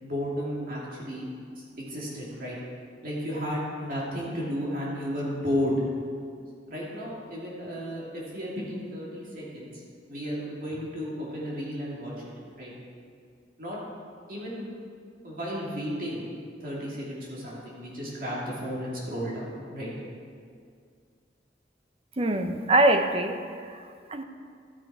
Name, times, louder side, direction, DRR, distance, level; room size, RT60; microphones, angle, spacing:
voice 1, 0.0-1.3 1.8-2.6 3.0-5.8 6.7-9.8 10.1-12.1 12.6-12.7 13.6-13.8 14.3-14.7 15.2-16.3 16.6-19.9, equal, 50° right, -5 dB, 2.5 m, -33 dB
voice 2, 22.2-24.2, right 1 dB, 30° right, 7 dB, 0.6 m, -24 dB
13.5 x 7.5 x 4.8 m, 2.2 s
head